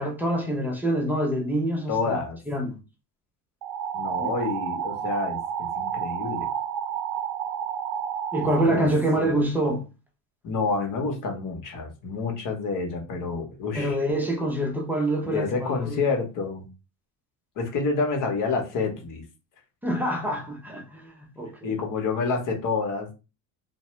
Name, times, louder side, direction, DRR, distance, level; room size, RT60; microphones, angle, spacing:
voice 1, 0.0-2.2 2.5-2.8 4.2-4.3 8.3-9.8 13.7-16.1 19.8-21.8, right 1 dB, 5° right, 0.6 m, -26 dB
voice 2, 1.9-2.4 3.9-6.5 8.4-8.9 9.2-9.3 10.4-14.0 15.2-16.7 17.6-19.2 21.6-23.1, left 4 dB, 50° left, 1.1 m, -28 dB
sound 1, 3.6-8.6, right 8 dB, 70° right, 0.6 m, -30 dB
2.6 x 2.2 x 3.1 m
cardioid pair, 115°, 42 cm